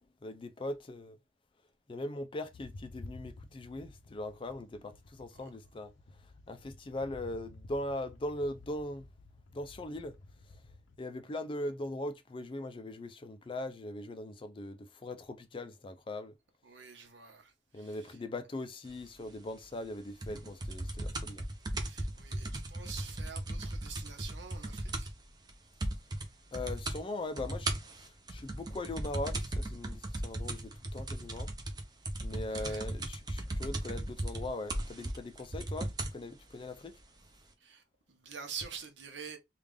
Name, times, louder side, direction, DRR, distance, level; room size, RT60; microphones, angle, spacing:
voice 1, 0.2-1.2 1.9-5.9 6.5-9.1 9.5-10.2 11.0-16.3 17.7-21.5 26.5-31.5 32.2-37.0, left 1 dB, 30° left, 0.4 m, -40 dB
sound 1, 2.5-11.0, left 2 dB, 85° left, 0.6 m, -52 dB
voice 2, 16.6-18.2 21.8-25.1 32.5-32.8 37.6-39.4, right 6 dB, 75° right, 1.0 m, -47 dB
sound 2, 20.2-25.2 25.5-25.6 25.8-26.3 26.5-27.0 27.4-36.2 37.0-37.1, right 1 dB, 20° right, 0.6 m, -37 dB
3.6 x 2.4 x 3.3 m
head